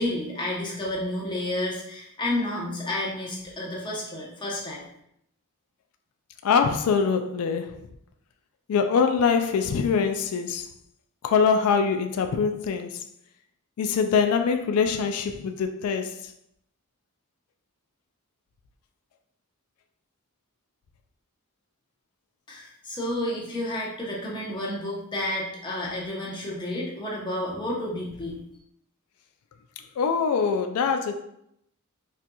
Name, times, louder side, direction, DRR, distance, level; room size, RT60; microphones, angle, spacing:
voice 1, 0.0-4.9 22.5-28.4, left 1 dB, 20° left, -4 dB, 0.8 m, -31 dB
voice 2, 6.4-7.9 8.7-10.7 11.2-13.0 13.8-16.3 30.0-31.2, left 6 dB, 75° left, 7 dB, 0.3 m, -24 dB
4.2 x 2.5 x 2.2 m, 0.75 s
head